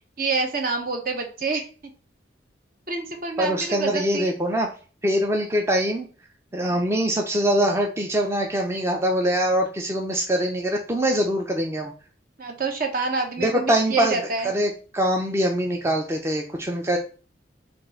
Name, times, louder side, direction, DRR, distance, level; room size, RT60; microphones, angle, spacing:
voice 1, 0.2-1.7 2.9-4.3 6.6-6.8 12.4-14.5, right 4 dB, 50° right, 4 dB, 0.9 m, -27 dB
voice 2, 3.4-4.7 5.0-6.1 6.5-11.9 13.4-17.0, equal, 15° right, 2 dB, 0.5 m, -23 dB
4.3 x 2.5 x 4.3 m, 0.38 s
head